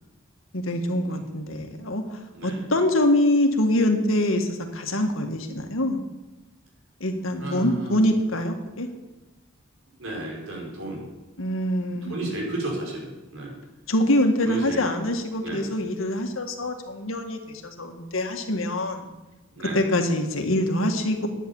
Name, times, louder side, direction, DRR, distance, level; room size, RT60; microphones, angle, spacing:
voice 1, 0.5-2.0 2.4-6.0 7.0-8.9 11.4-12.4 13.9-19.0 19.7-21.3, left 1 dB, 85° left, 5 dB, 1.9 m, -24 dB
voice 2, 2.3-2.7 7.4-8.2 10.0-11.1 12.0-13.5 14.4-14.8 15.4-15.7 19.5-19.8, right 2 dB, 90° right, -2 dB, 5.3 m, -33 dB
11.5 x 10.0 x 7.2 m, 1.1 s
head